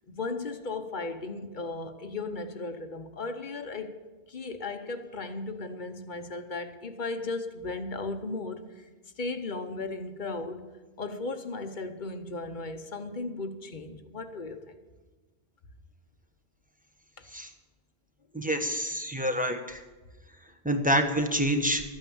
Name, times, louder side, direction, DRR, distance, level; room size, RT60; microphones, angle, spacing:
voice 1, 0.1-3.9 4.3-8.9 9.2-10.7 11.0-14.8 17.2-17.3, left 3 dB, 50° left, 8 dB, 1.0 m, -36 dB
voice 2, 18.3-19.8 20.6-21.8, equal, 10° right, 5 dB, 1.1 m, -27 dB
13.5 x 9.0 x 7.0 m, 1.2 s
omnidirectional pair, 1.1 m